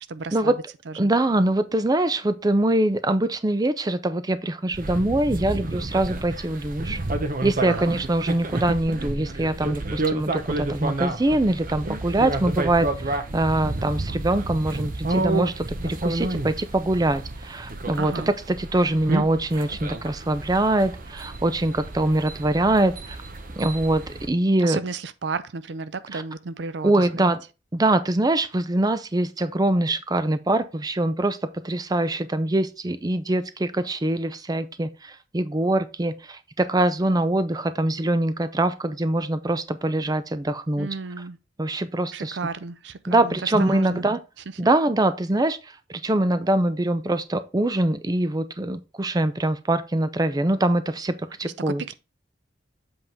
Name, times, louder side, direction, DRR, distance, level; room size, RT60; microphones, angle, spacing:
voice 1, 0.1-0.6 0.9-1.1 7.7-8.0 18.0-18.3 24.6-27.3 40.8-41.4 42.1-44.0 51.4-52.0, right 4 dB, 65° right, 0.5 m, -33 dB
voice 2, 1.0-7.0 7.4-18.1 18.6-23.2 23.6-24.8 26.1-26.2 26.8-27.4 27.7-31.4 31.6-40.9 41.6-42.4 43.1-44.2 44.6-51.1 51.4-51.8, right 1 dB, 20° right, 0.5 m, -23 dB
sound 1, 4.7-24.3, right 2 dB, 50° right, 0.9 m, -30 dB
7.8 x 3.8 x 4.5 m
head